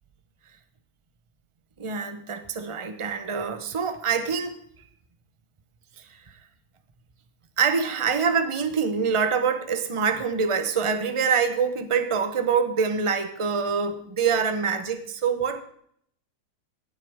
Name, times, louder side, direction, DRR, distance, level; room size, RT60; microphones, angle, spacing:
voice 1, 1.8-4.5 6.1-6.2 7.6-15.6, right 6 dB, 25° right, 8 dB, 0.7 m, -25 dB
16.5 x 9.0 x 3.6 m, 0.66 s
omnidirectional pair, 1.8 m